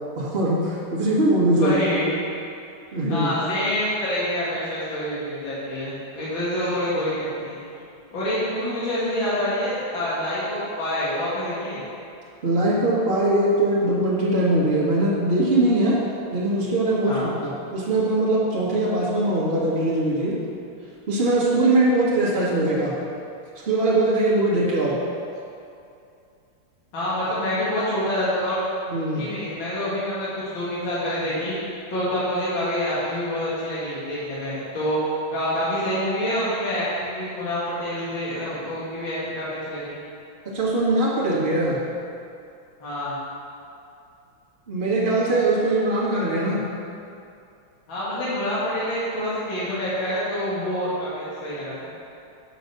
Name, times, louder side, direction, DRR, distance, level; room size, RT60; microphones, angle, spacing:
voice 1, 0.2-1.8 2.9-3.3 12.4-16.0 16.3-20.4 21.1-22.9 23.6-25.0 28.9-29.2 40.4-41.8 44.7-46.6, right 2 dB, 30° right, -8 dB, 1.7 m, -21 dB
voice 2, 1.5-2.2 3.1-7.6 8.1-11.8 17.0-17.3 26.9-28.6 29.1-31.5 31.9-40.0 42.8-43.2 47.9-51.8, equal, 65° left, -9 dB, 2.6 m, -27 dB
7.1 x 5.9 x 6.6 m, 2.6 s
omnidirectional pair, 2.3 m